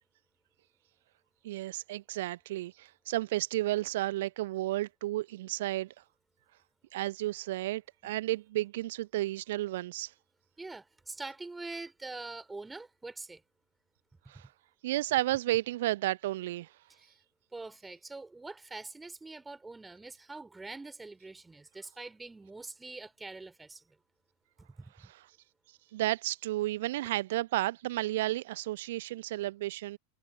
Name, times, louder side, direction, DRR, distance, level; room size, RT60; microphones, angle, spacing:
voice 1, 1.4-5.9 6.9-10.1 14.3-14.5 14.8-16.7 25.0-25.3 25.7-30.0, right 16 dB, 55° right, 0.6 m, -32 dB
voice 2, 10.6-13.4 16.9-17.2 17.5-23.8 24.6-25.1, right 3 dB, 10° right, 3.6 m, -44 dB
figure-of-eight pair, 90°, 0 cm